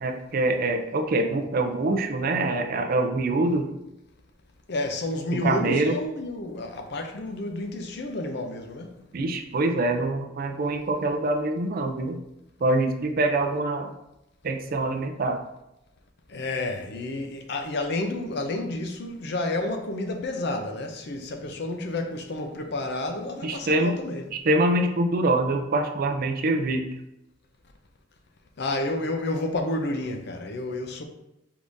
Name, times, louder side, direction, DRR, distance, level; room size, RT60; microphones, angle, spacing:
voice 1, 0.0-3.7 5.4-6.0 9.1-12.2 12.6-13.9 14.4-15.4 23.4-24.0 24.3-26.8, right 2 dB, 45° right, 0.4 m, -24 dB
voice 2, 4.7-9.0 16.3-24.3 28.6-31.0, left 2 dB, 55° left, 0.5 m, -30 dB
4.7 x 3.6 x 2.6 m
head